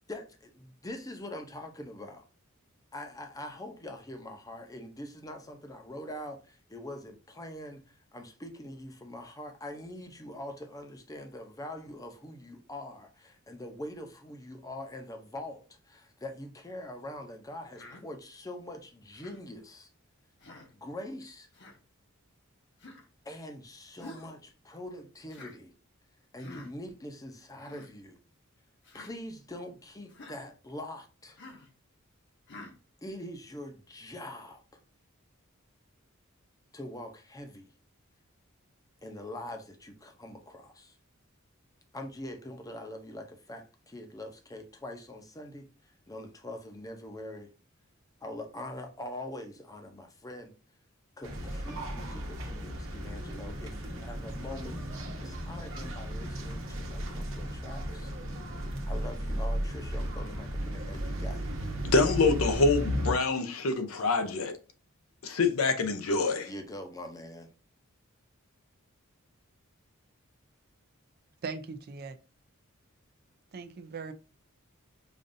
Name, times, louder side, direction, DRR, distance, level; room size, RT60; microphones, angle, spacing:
voice 1, 0.1-2.2 2.9-19.9 20.7-21.5 23.2-25.7 26.3-28.2 28.9-31.4 33.0-34.8 36.7-37.7 39.0-41.0 41.9-45.7 46.1-47.5 48.2-50.5 51.2-54.8 55.2-58.1 58.9-61.5 66.5-67.5, left 1 dB, 15° left, 0.6 m, -43 dB
Human voice, 17.7-18.0 19.1-19.4 20.4-20.7 21.5-21.8 22.8-23.1 24.0-24.3 25.3-25.6 26.4-26.7 27.5-27.9 28.8-29.1 30.1-30.4 31.4-31.7 32.5-32.8, left 2 dB, 55° left, 0.9 m, -48 dB
sound 1, 51.2-63.1, equal, 65° right, 1.0 m, -35 dB
voice 2, 61.8-64.6 65.2-66.5, left 3 dB, 85° left, 0.7 m, -26 dB
voice 3, 71.4-72.2 73.5-74.1, right 4 dB, 50° right, 0.4 m, -39 dB
5.1 x 2.5 x 2.6 m
head